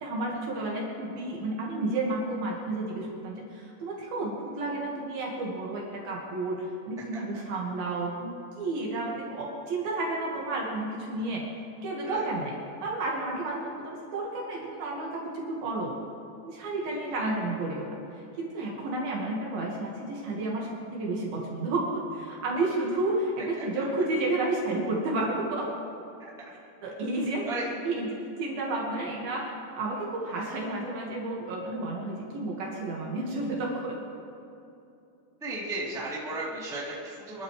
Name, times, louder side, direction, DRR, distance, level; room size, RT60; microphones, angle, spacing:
voice 1, 0.0-11.4 11.8-15.9 16.4-25.7 26.8-27.5 27.9-34.0, right 2 dB, 60° right, -3 dB, 3.3 m, -31 dB
voice 2, 16.9-17.3 23.6-23.8 26.2-26.3 27.4-27.7 30.3-30.6 35.4-37.4, right 2 dB, ahead, -6 dB, 2.1 m, -36 dB
25.5 x 12.5 x 3.3 m, 2.7 s
omnidirectional pair, 5.4 m